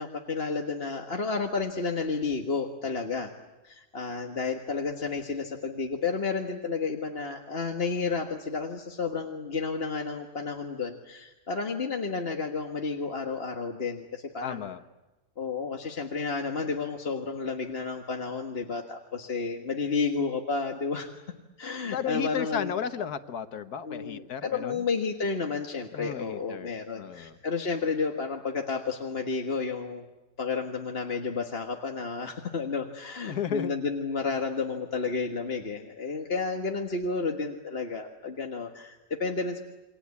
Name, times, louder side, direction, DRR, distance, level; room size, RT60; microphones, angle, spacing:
voice 1, 0.0-3.3 3.6-14.7 15.4-21.1 21.6-22.7 23.9-30.0 30.4-39.6, left 4 dB, 40° left, 3 dB, 1.7 m, -31 dB
voice 2, 14.4-14.8 21.9-24.8 25.9-26.7 27.0-27.4 33.3-33.8, left 8 dB, 85° left, 10 dB, 1.7 m, -33 dB
28.5 x 24.0 x 8.5 m, 1.1 s
omnidirectional pair, 1.6 m